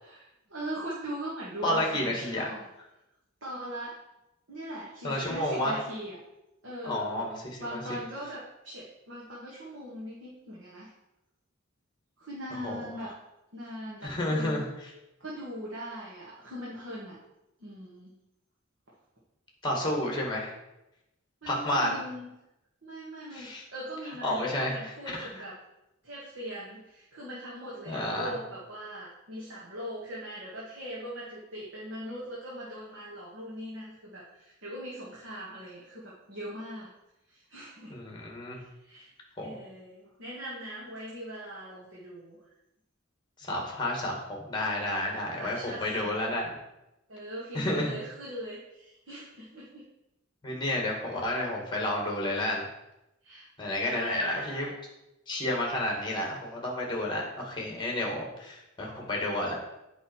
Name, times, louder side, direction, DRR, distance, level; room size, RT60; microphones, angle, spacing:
voice 1, 0.0-2.6 3.4-4.0 4.5-6.2 6.6-10.9 12.2-13.1 13.5-14.7 15.2-17.2 17.6-18.1 21.4-22.3 22.8-25.6 26.0-36.9 37.3-37.9 38.6-39.1 39.4-42.4 45.4-46.4 47.1-49.8 53.2-53.5 53.8-54.8, equal, 70° right, -6 dB, 1.8 m, -40 dB
voice 2, 1.6-2.5 5.0-5.8 6.8-7.8 12.6-12.9 14.0-14.7 19.6-20.5 21.5-22.0 23.3-23.6 24.2-24.7 25.1-25.3 27.9-28.4 37.9-38.6 39.4-39.5 43.4-46.4 47.5-47.9 50.4-52.7 53.6-54.7 55.3-59.5, left 1 dB, 25° left, 0 dB, 1.9 m, -30 dB
8.2 x 5.4 x 4.6 m, 0.91 s
head